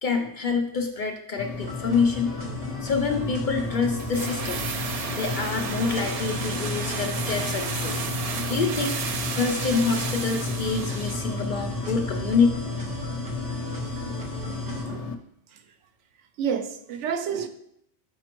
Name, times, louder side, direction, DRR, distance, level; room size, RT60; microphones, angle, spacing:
voice 1, 0.0-2.3 2.8-8.1 8.5-9.0 9.3-12.5, left 5 dB, 55° left, 4 dB, 0.6 m, -26 dB
sound 1, 1.4-15.1, left 3 dB, 80° left, 0.9 m, -33 dB
sound 2, 1.6-14.8, right 1 dB, 40° right, 1.0 m, -36 dB
sound 3, 4.0-11.3 11.5-11.6, right 5 dB, 65° right, 0.3 m, -33 dB
voice 2, 16.4-17.5, right 7 dB, 80° right, 8 dB, 0.9 m, -29 dB
6.3 x 5.1 x 2.9 m, 0.71 s
omnidirectional pair, 1.2 m